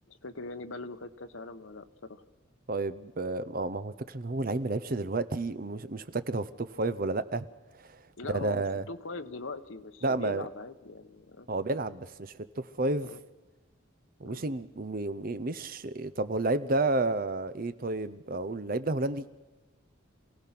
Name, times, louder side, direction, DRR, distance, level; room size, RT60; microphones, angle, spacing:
voice 1, 0.1-2.2 8.2-11.5 13.0-13.2 14.2-14.4, left 3 dB, 75° left, 9 dB, 1.1 m, -41 dB
voice 2, 2.7-7.4 7.8-7.9 8.3-8.8 10.0-10.5 11.5-13.1 14.2-19.3, right 2 dB, 45° right, 13 dB, 0.7 m, -31 dB
27.0 x 17.0 x 6.0 m, 1.2 s
head